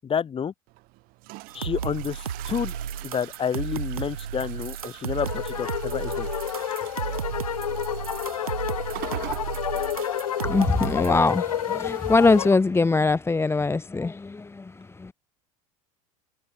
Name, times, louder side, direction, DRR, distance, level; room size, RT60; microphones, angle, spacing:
voice 1, 0.0-0.5 1.5-2.7 3.0-6.3, left 7 dB, 30° left, 4.4 m, -29 dB
sound 1, 0.7-12.4, right 24 dB, 55° right, 7.0 m, -44 dB
sound 2, 1.5-11.2, right 8 dB, 85° right, 1.5 m, -33 dB
sound 3, 5.2-12.6, left 10 dB, 80° left, 1.8 m, -30 dB
voice 2, 10.4-15.1, left 3 dB, 15° left, 1.5 m, -22 dB
hypercardioid pair, 75°, 18 cm